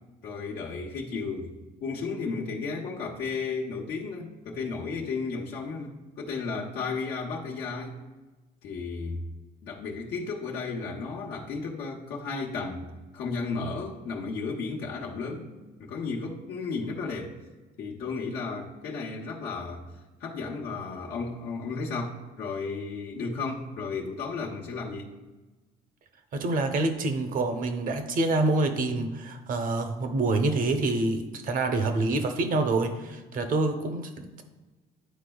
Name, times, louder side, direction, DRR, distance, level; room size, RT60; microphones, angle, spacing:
voice 1, 0.2-8.0 8.6-9.2 9.6-15.5 15.8-17.3 17.8-19.8 20.2-25.1, left 4 dB, 70° left, -4 dB, 1.0 m, -34 dB
voice 2, 26.3-34.4, right 2 dB, 55° right, 7 dB, 0.8 m, -27 dB
10.0 x 4.3 x 2.3 m, 1.2 s
cardioid pair, 110°, 17 cm